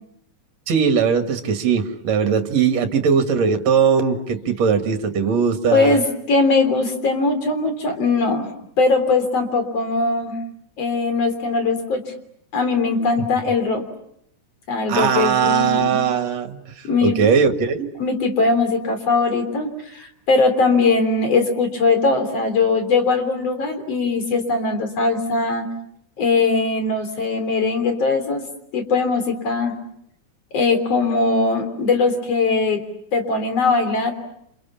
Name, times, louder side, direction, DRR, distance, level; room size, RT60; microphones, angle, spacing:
voice 1, 0.7-6.0 14.9-17.9, right 6 dB, 60° right, 7 dB, 3.0 m, -19 dB
voice 2, 5.7-8.5 8.8-10.3 10.8-12.0 12.5-13.8 14.7-16.0 16.8-17.3 18.0-25.7 26.2-28.4 28.7-29.7 30.5-32.8 33.1-34.1, left 3 dB, 55° left, 7 dB, 4.6 m, -20 dB
29.0 x 27.5 x 7.2 m, 0.73 s
omnidirectional pair, 3.5 m